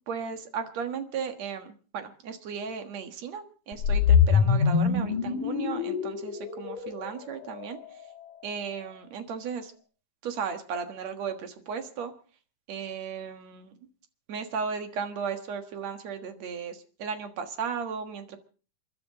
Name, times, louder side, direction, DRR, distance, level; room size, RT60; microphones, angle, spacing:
voice 1, 0.1-7.8 8.4-9.7 10.2-12.1 12.7-13.8 14.3-18.4, right 6 dB, 60° right, 7 dB, 2.6 m, -35 dB
sound 1, 3.7-8.0, left 6 dB, 80° left, 3.3 m, -24 dB
29.0 x 12.0 x 3.8 m, 0.39 s
omnidirectional pair, 3.8 m